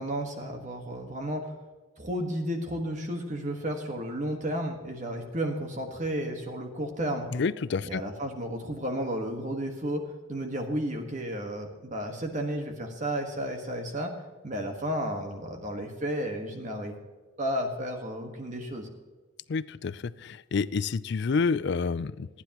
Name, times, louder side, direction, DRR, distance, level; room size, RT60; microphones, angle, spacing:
voice 1, 0.0-1.5 2.0-7.3 7.8-10.0 10.3-14.1 14.4-16.9 17.4-18.9, equal, 40° right, 3 dB, 1.5 m, -32 dB
voice 2, 7.3-8.0 19.5-22.3, left 4 dB, 60° left, 17 dB, 0.4 m, -28 dB
28.5 x 9.9 x 3.0 m, 1.3 s
head